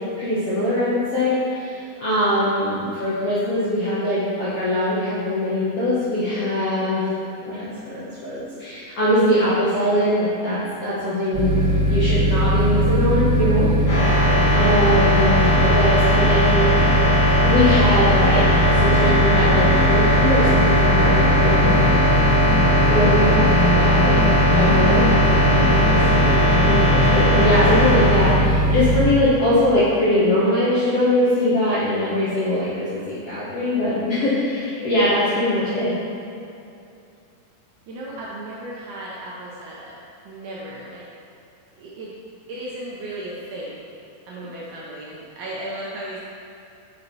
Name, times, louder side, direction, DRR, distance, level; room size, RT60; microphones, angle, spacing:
voice 1, 0.2-7.1 7.5-11.6 11.9-14.1 14.5-16.8 17.4-21.8 22.9-23.4 23.7-24.2 24.5-25.1 25.5-35.9, left 1 dB, 75° left, -11 dB, 1.4 m, -22 dB
sound 1, 11.3-29.1, equal, 60° right, 1.8 m, -19 dB
sound 2, 13.9-28.4, left 1 dB, 50° left, 1.2 m, -20 dB
voice 2, 37.9-40.0 40.3-41.1 41.8-42.2 42.5-43.8 44.3-46.2, right 1 dB, 75° right, -6 dB, 1.9 m, -35 dB
5.7 x 5.4 x 4.1 m, 2.6 s
omnidirectional pair, 4.4 m